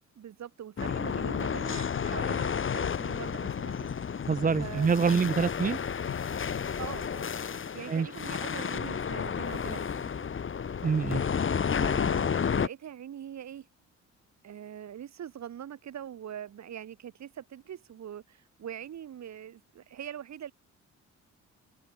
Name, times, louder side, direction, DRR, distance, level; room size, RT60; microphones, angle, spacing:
voice 1, 0.2-4.2 4.6-5.2 6.8-7.3 7.7-10.4 11.6-13.7 14.4-20.5, right 10 dB, 65° right, 7.2 m, -43 dB
sound 1, 0.8-12.7, left 7 dB, 40° left, 2.6 m, -31 dB
sound 2, 1.7-7.2, left 10 dB, 60° left, 2.4 m, -42 dB
voice 2, 4.3-5.8 7.9-8.1 10.8-11.2, right 5 dB, 30° right, 0.9 m, -26 dB
open air
cardioid pair, 90°, 30 cm